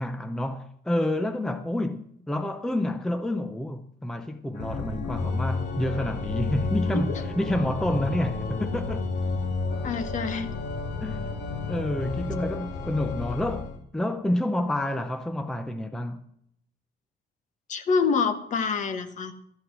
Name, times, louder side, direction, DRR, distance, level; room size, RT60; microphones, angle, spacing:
voice 1, 0.0-9.0 11.0-11.3 11.7-13.7 13.9-16.2, left 1 dB, 5° left, 0.6 m, -29 dB
Organ, 4.6-13.8, left 3 dB, 80° left, 2.1 m, -31 dB
voice 2, 9.8-10.5 17.7-19.3, left 5 dB, 45° left, 1.3 m, -26 dB
13.0 x 8.8 x 6.1 m
cardioid pair, 160°, 17 cm